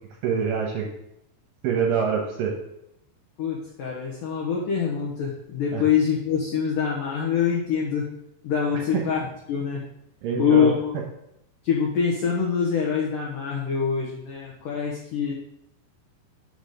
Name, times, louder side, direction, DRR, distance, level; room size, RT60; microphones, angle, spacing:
voice 1, 0.2-0.9 1.6-2.5 5.7-5.8 8.9-9.0 10.2-10.7, right 6 dB, 75° right, -1 dB, 2.7 m, -25 dB
voice 2, 3.4-8.1 8.4-9.8 10.4-10.9 11.6-15.3, left 7 dB, 80° left, -2 dB, 1.9 m, -25 dB
6.8 x 4.1 x 6.5 m, 0.81 s
omnidirectional pair, 5.2 m